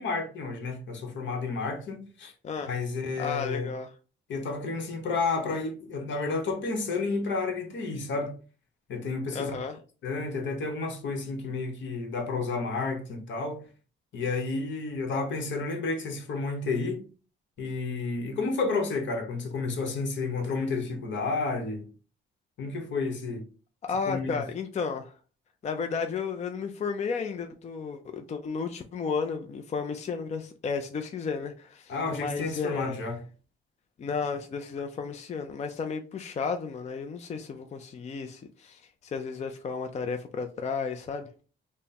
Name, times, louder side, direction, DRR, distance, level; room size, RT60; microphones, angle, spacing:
voice 1, 0.0-2.3 2.6-3.7 4.3-8.3 8.9-9.5 10.0-13.6 14.1-17.0 17.6-21.9 22.6-23.4 24.1-24.4 31.9-33.2, left 3 dB, 70° left, 1.0 m, -31 dB
voice 2, 3.2-3.9 9.3-9.8 23.8-25.1 25.6-33.1 34.0-41.4, left 5 dB, 35° left, 0.4 m, -33 dB
3.4 x 2.1 x 4.1 m
cardioid pair, 90°, 20 cm